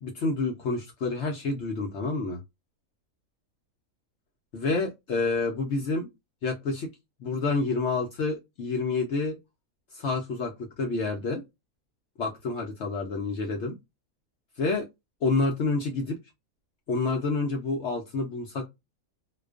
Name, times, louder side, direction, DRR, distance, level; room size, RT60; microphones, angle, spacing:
voice 1, 0.0-2.4 4.5-6.1 6.4-6.9 7.2-9.4 9.9-11.4 12.2-13.8 14.6-14.9 15.2-16.2 16.9-18.7, left 3 dB, 65° left, 0.7 m, -28 dB
2.4 x 2.2 x 2.3 m
omnidirectional pair, 1.6 m